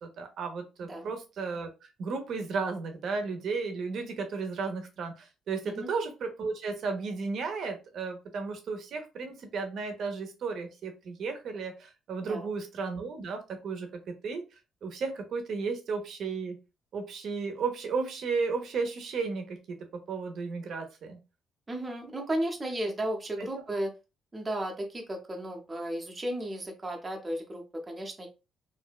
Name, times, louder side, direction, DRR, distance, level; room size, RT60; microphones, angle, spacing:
voice 1, 0.0-14.4 14.8-16.6 16.9-19.8 20.1-21.2, right 4 dB, 65° right, 5 dB, 0.6 m, -34 dB
voice 2, 21.7-23.9 24.3-28.3, right 1 dB, 20° right, 1 dB, 0.6 m, -34 dB
2.6 x 2.1 x 2.3 m, 0.29 s
cardioid pair, 105°, 0 cm